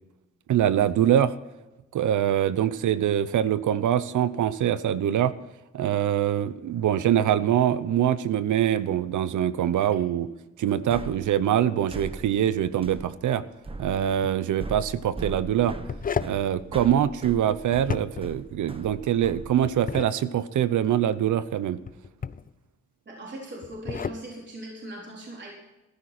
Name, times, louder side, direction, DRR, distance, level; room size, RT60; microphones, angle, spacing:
voice 1, 0.5-1.3 1.9-5.3 5.7-10.3 10.6-13.4 13.8-15.8 16.2-21.8, right 10 dB, 80° right, 16 dB, 0.8 m, -24 dB
sound 1, 10.9-20.0, right 2 dB, 20° right, 1.0 m, -40 dB
sound 2, 14.1-14.3 15.6-16.4 17.8-18.4 19.6-20.1 21.9-22.5 23.6-24.2, left 6 dB, 30° left, 0.5 m, -32 dB
voice 2, 23.1-25.5, right 1 dB, 35° right, -3 dB, 4.1 m, -39 dB
15.0 x 13.0 x 4.3 m, 1.0 s
wide cardioid pair, 130°, 30 cm